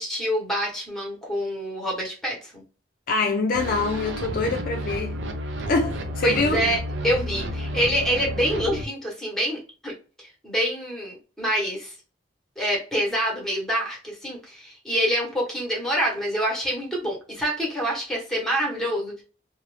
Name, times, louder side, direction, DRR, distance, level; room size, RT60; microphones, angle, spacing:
voice 1, 0.0-2.6 6.2-9.9 10.4-11.9 12.6-19.2, equal, 5° left, 1.0 m, -26 dB
voice 2, 3.1-5.2 5.7-6.6, left 3 dB, 50° left, 0.4 m, -25 dB
sound 1, 3.5-8.8, equal, 80° right, 0.5 m, -31 dB
2.5 x 2.1 x 3.1 m
head